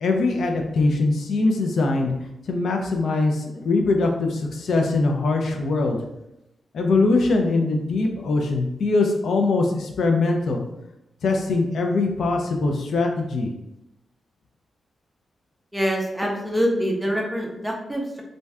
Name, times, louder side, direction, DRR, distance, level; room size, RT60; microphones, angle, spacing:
voice 1, 0.0-2.1 2.5-6.0 6.7-10.6 11.2-13.5, left 3 dB, 70° left, 3 dB, 0.4 m, -22 dB
voice 2, 15.7-18.2, equal, 5° right, 0 dB, 0.4 m, -25 dB
2.6 x 2.2 x 3.3 m, 0.87 s
wide cardioid pair, 145°, 0 cm